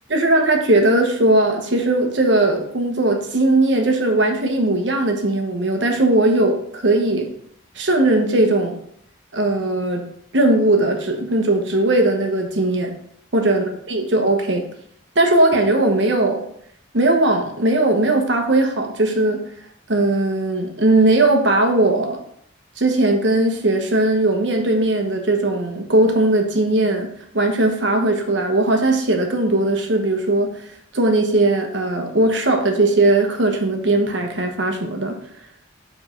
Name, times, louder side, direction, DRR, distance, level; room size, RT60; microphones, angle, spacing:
voice 1, 0.1-7.3 7.8-8.7 9.3-10.1 10.3-12.9 13.3-14.7 15.1-16.4 16.9-19.4 19.9-22.2 22.8-27.1 27.3-30.5 30.9-35.1, right 2 dB, 65° right, 3 dB, 1.1 m, -18 dB
5.2 x 4.3 x 5.2 m, 0.69 s
head